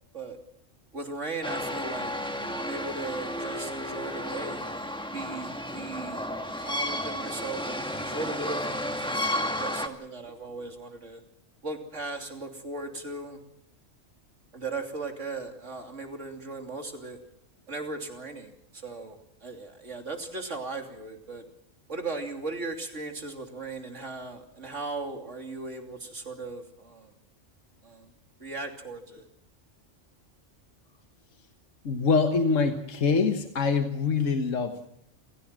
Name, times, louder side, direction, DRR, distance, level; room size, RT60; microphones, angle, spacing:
voice 1, 0.9-2.1 2.5-4.6 5.1-11.2 11.6-13.4 14.5-17.2 17.7-21.5 21.9-27.1 27.8-29.3, right 3 dB, 70° right, 4 dB, 3.3 m, -37 dB
sound 1, 1.4-9.9, left 1 dB, 5° left, 1.6 m, -32 dB
voice 2, 31.9-34.9, left 4 dB, 75° left, 6 dB, 1.7 m, -25 dB
28.5 x 16.0 x 7.5 m, 0.76 s
omnidirectional pair, 1.3 m